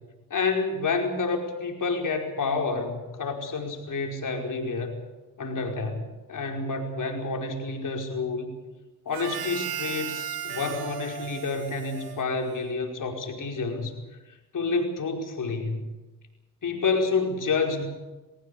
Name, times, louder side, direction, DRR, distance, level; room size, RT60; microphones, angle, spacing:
voice 1, 0.3-5.0 5.4-8.5 9.0-13.9 14.5-15.9 16.6-17.8, left 4 dB, 50° left, 2 dB, 5.0 m, -29 dB
Harmonica, 9.1-12.9, right 9 dB, 65° right, 2.1 m, -36 dB
21.0 x 17.5 x 8.5 m, 1.1 s
supercardioid pair, 65°, 40 cm